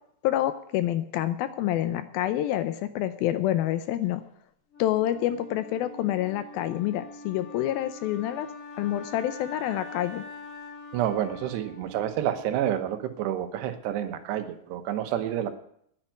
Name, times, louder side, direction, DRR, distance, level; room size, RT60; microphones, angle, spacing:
voice 1, 0.2-4.2 4.8-8.5 8.8-10.2, left 13 dB, 80° left, 11 dB, 2.2 m, -27 dB
Wind instrument woodwind instrument, 4.7-12.7, left 3 dB, 40° left, 3.8 m, -44 dB
voice 2, 10.9-15.5, right 11 dB, 90° right, 8 dB, 3.2 m, -29 dB
10.5 x 8.9 x 9.2 m, 0.70 s
omnidirectional pair, 4.7 m